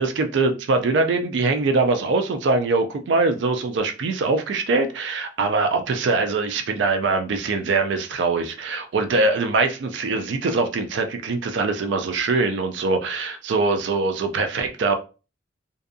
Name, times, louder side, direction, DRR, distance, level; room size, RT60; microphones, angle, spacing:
voice 1, 0.0-14.9, right 3 dB, 75° right, 0.4 m, -22 dB
2.6 x 2.3 x 2.5 m
head